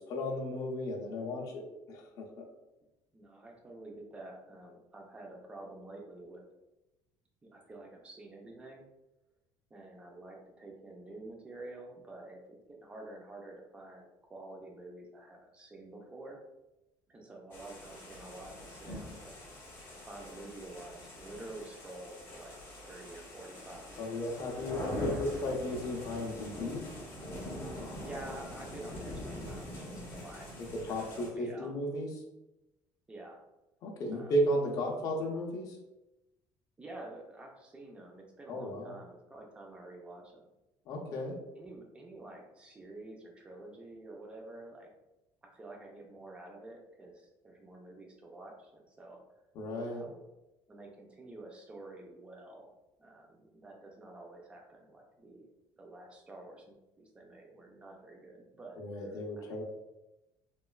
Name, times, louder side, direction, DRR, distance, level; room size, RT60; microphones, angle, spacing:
voice 1, 0.0-2.4 24.0-26.9 30.7-32.1 33.8-35.8 38.5-38.9 40.9-41.4 49.5-50.0 58.8-59.6, equal, 45° left, -1 dB, 0.5 m, -34 dB
voice 2, 3.1-6.4 7.4-8.8 9.7-16.4 17.1-19.4 20.1-22.6 22.8-24.7 24.9-25.6 28.0-30.5 30.9-31.7 33.1-33.4 34.1-34.3 36.8-40.5 41.5-44.9 45.4-49.2 49.9-50.2 50.7-52.7 53.0-55.5 55.8-59.2 59.5-59.6, right 2 dB, 15° right, 1 dB, 0.4 m, -49 dB
sound 1, 17.5-31.3, left 1 dB, 25° left, 0.8 m, -43 dB
3.0 x 2.2 x 2.3 m, 0.97 s
cardioid pair, 175°, 8 cm